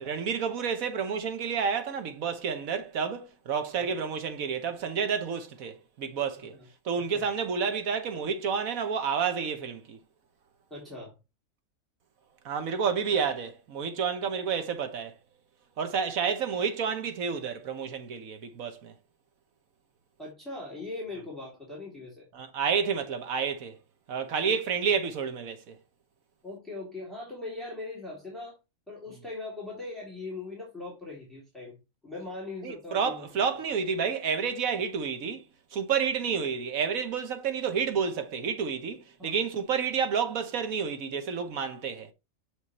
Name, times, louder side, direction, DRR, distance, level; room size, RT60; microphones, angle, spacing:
voice 1, 0.0-6.5 6.8-10.0 12.4-15.1 15.8-18.9 22.3-23.8 24.1-25.8 32.6-35.4 35.7-42.1, right 6 dB, 85° right, 1.5 m, -30 dB
voice 2, 7.0-7.3 10.7-11.2 20.2-22.3 24.5-24.6 26.4-28.6 28.9-31.8 32.0-33.3 39.2-39.4, left 2 dB, ahead, 2.9 m, -40 dB
7.2 x 5.1 x 3.1 m
omnidirectional pair, 1.4 m